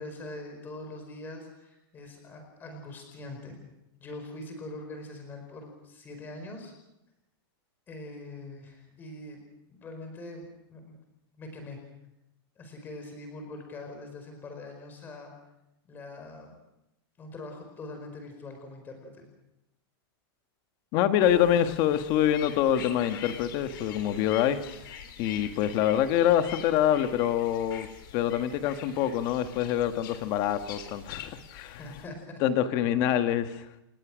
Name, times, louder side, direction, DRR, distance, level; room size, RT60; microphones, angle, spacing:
voice 1, 0.0-3.6 4.0-6.7 7.9-9.4 9.7-10.9 11.4-11.8 12.6-15.3 15.9-16.6 17.2-19.3 31.8-32.4, left 2 dB, 15° left, 5 dB, 4.9 m, -43 dB
voice 2, 20.9-27.9 28.1-31.8 32.4-33.6, left 10 dB, 30° left, 9 dB, 1.4 m, -26 dB
sound 1, 21.2-32.0, left 9 dB, 55° left, 3.5 m, -45 dB
29.0 x 20.0 x 6.2 m, 0.90 s
supercardioid pair, 175°, 13 cm